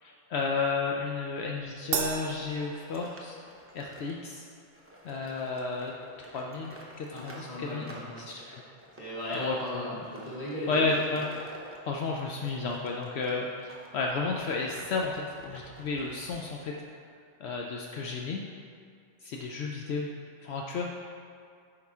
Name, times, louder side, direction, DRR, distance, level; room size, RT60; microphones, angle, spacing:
voice 1, 0.0-3.3 3.7-4.4 5.0-5.9 6.3-7.9 8.3-8.6 9.3-9.9 10.7-11.3 11.8-16.7 17.4-18.4 19.2-20.1 20.4-21.1, left 4 dB, 70° left, -1 dB, 0.8 m, -32 dB
sound 1, 1.9-13.9 14.3-16.8, right 1 dB, 15° right, 0.7 m, -50 dB
Crash cymbal, 1.9-3.6, right 6 dB, 55° right, 0.7 m, -34 dB
voice 2, 7.1-8.3 9.0-11.1, equal, 30° left, -8 dB, 1.8 m, -37 dB
8.4 x 4.8 x 3.5 m, 2.3 s
omnidirectional pair, 1.2 m